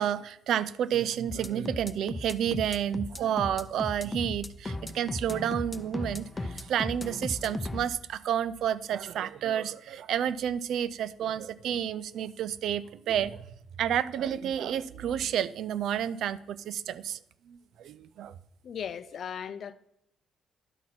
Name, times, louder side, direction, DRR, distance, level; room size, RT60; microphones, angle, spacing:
voice 1, 0.0-13.4 13.8-17.2 17.5-18.4, right 9 dB, 75° right, 0.4 m, -30 dB
sound 1, 1.3-7.9, left 2 dB, 20° left, 0.6 m, -36 dB
voice 2, 18.6-19.7, left 8 dB, 60° left, 0.5 m, -37 dB
11.0 x 4.2 x 5.7 m
cardioid pair, 90°, 0 cm